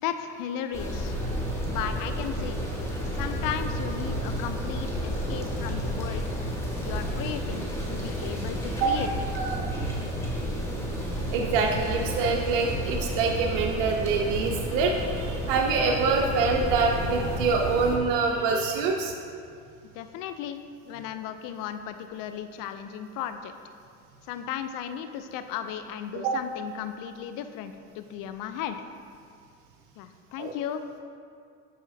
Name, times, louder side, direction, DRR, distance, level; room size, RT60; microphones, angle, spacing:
voice 1, 0.0-1.1 1.7-2.7 3.1-6.3 6.8-9.5 19.8-20.6 20.8-23.5 24.3-28.8 30.0-30.8, left 9 dB, 65° left, 9 dB, 0.5 m, -35 dB
sound 1, 0.7-18.0, equal, 10° left, 1.5 m, -31 dB
voice 2, 9.3-10.0 11.3-19.1 26.2-26.3 30.4-30.5, right 4 dB, 80° right, 1 dB, 0.7 m, -25 dB
10.5 x 4.9 x 2.7 m, 2.3 s
supercardioid pair, 95°, 34 cm